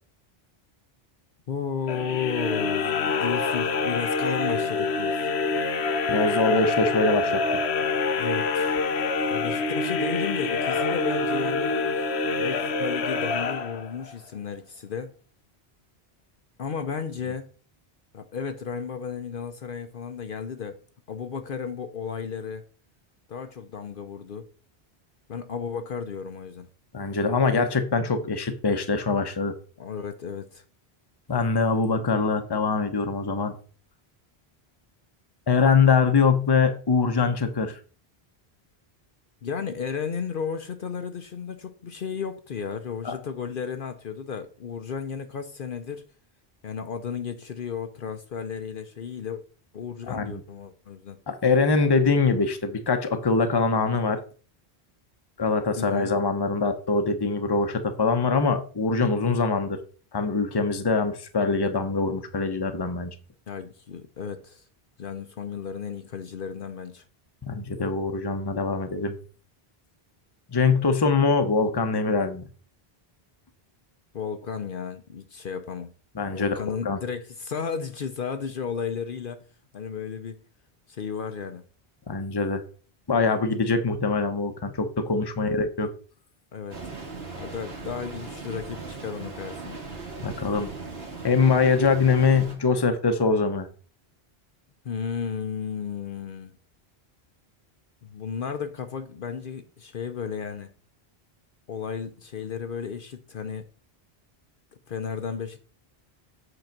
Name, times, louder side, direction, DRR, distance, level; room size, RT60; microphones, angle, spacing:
voice 1, 1.5-5.3 7.8-7.9 8.2-8.8 9.3-11.8 12.4-15.1 16.6-17.5 18.1-20.8 21.1-22.6 23.3-24.5 25.3-26.7 29.8-30.6 39.4-46.0 46.6-49.4 49.7-51.2 55.8-56.1 63.5-64.6 65.0-67.0 74.1-75.9 76.3-79.4 79.7-80.4 80.9-81.6 86.5-86.8 87.4-89.8 94.8-96.6 98.0-100.7 101.7-103.7 104.9-105.6, left 6 dB, 60° left, 0.9 m, -33 dB
sound 1, 1.8-14.1, left 4 dB, 85° left, 1.1 m, -26 dB
voice 2, 6.1-7.4 26.9-29.5 31.3-33.6 35.5-37.8 43.0-43.1 50.1-50.4 51.3-54.2 55.4-59.8 60.1-63.1 67.5-69.2 70.5-72.4 76.1-77.0 82.1-82.6 83.1-85.9 90.2-90.7 91.2-93.7, left 4 dB, 25° left, 0.8 m, -23 dB
sound 2, 86.7-92.5, right 3 dB, 70° right, 2.0 m, -38 dB
8.0 x 4.0 x 5.9 m
omnidirectional pair, 1.1 m